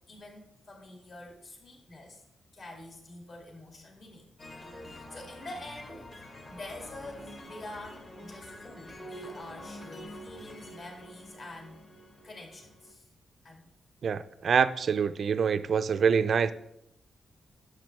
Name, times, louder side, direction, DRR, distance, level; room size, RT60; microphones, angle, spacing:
voice 1, 0.1-2.2 2.5-4.2 4.8-6.1 6.5-11.9 12.2-13.0 13.4-13.7, left 1 dB, 50° left, 2.1 m, -46 dB
sound 1, 4.4-12.9, equal, 35° left, 1.1 m, -46 dB
voice 2, 14.0-16.5, right 6 dB, 50° right, 0.3 m, -25 dB
10.0 x 6.4 x 3.2 m
wide cardioid pair, 140°, 0 cm